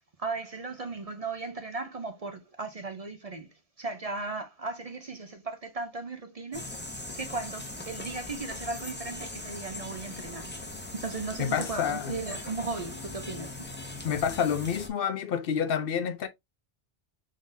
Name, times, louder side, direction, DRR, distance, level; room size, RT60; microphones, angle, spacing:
voice 1, 0.0-3.5 3.8-6.7 7.2-10.5 10.9-13.6 13.9-14.1, right 3 dB, 45° right, 0.6 m, -36 dB
sound 1, 6.5-14.9, left 2 dB, 10° left, 0.9 m, -40 dB
voice 2, 11.4-12.1 14.0-16.3, left 8 dB, 65° left, 0.7 m, -28 dB
3.8 x 3.7 x 2.6 m
omnidirectional pair, 1.1 m